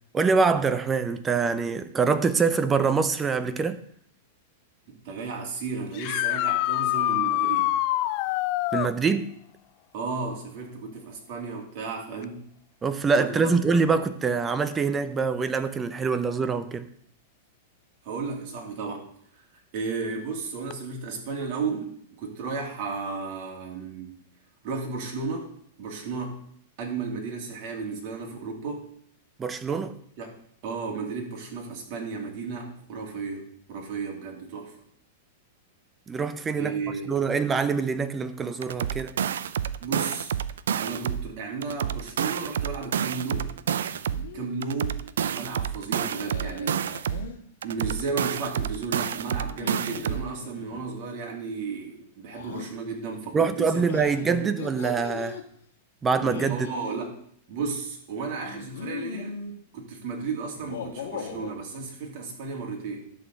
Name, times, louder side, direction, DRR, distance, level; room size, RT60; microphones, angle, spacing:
voice 1, 0.1-3.8 8.7-9.4 12.8-16.9 29.4-30.0 36.1-36.8 37.1-39.2 45.9-46.1 53.3-55.4 56.0-56.7, right 5 dB, 15° right, 0.7 m, -25 dB
voice 2, 4.9-7.8 9.9-12.4 13.2-13.5 18.0-19.4 19.7-24.2 24.6-26.4 26.8-28.9 30.2-30.3 30.6-34.7 36.6-37.1 39.8-40.3 40.8-43.5 44.3-45.0 45.3-47.2 47.6-53.9 54.2-54.5 56.5-57.1 57.5-59.4 59.7-63.1, right 4 dB, 50° right, 2.8 m, -34 dB
sound 1, 5.9-8.9 12.2-12.3 14.4-14.5 20.7-20.8, left 15 dB, 45° left, 0.4 m, -25 dB
sound 2, 38.6-41.3 41.6-44.3 44.6-47.3 47.6-50.3, right 8 dB, 85° right, 0.5 m, -29 dB
sound 3, 43.2-43.5 43.9-44.4 46.1-47.4 49.5-50.8 52.3-52.7 53.9-55.4 56.1-57.0 58.4-59.5 60.5-61.5, left 6 dB, 80° left, 1.7 m, -39 dB
11.5 x 4.1 x 7.8 m
supercardioid pair, 145°, 0 cm